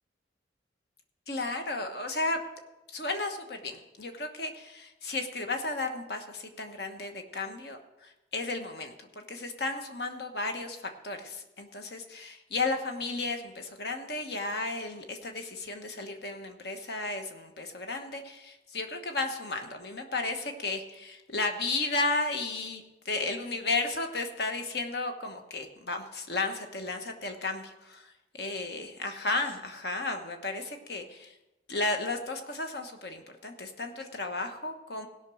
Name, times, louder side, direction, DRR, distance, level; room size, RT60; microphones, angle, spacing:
voice 1, 1.3-2.4 2.9-31.3 31.7-35.1, left 3 dB, 65° left, 5 dB, 1.2 m, -34 dB
17.0 x 5.9 x 6.3 m, 1.0 s
head